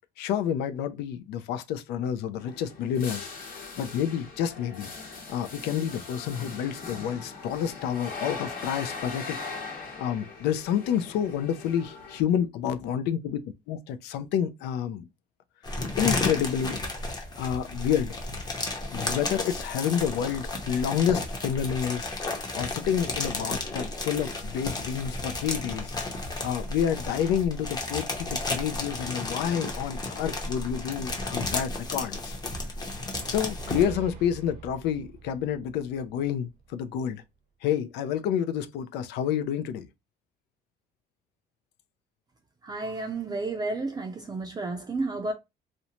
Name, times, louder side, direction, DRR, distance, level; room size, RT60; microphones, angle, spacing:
voice 1, 0.2-4.9 5.3-9.4 10.0-13.4 13.7-15.0 16.0-16.8 17.4-18.2 18.9-22.1 22.5-26.0 26.4-32.3 33.3-37.2 37.6-39.9, left 9 dB, 85° left, 0.4 m, -29 dB
sound 1, 2.4-12.2, left 4 dB, 60° left, 1.0 m, -40 dB
sound 2, 15.6-33.8, left 2 dB, 25° left, 0.7 m, -33 dB
sound 3, 33.1-37.0, right 6 dB, 65° right, 0.6 m, -45 dB
voice 2, 42.6-45.3, right 3 dB, 25° right, 0.4 m, -31 dB
2.5 x 2.1 x 2.8 m
cardioid pair, 110°, 17 cm